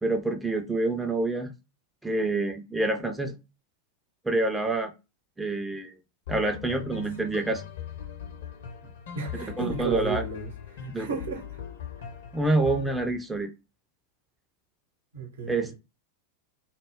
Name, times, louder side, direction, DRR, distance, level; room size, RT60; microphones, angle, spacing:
voice 1, 0.0-1.5 2.0-3.4 4.2-4.9 5.4-5.9 6.3-7.6 9.6-10.2 10.9-11.1 12.3-13.5 15.5-15.8, right 2 dB, 5° right, 0.4 m, -27 dB
sound 1, 6.3-13.1, left 9 dB, 60° left, 0.6 m, -40 dB
voice 2, 9.1-10.5 10.8-11.4 15.1-15.7, right 5 dB, 65° right, 0.8 m, -33 dB
2.2 x 2.0 x 3.4 m
figure-of-eight pair, 90°, 0 cm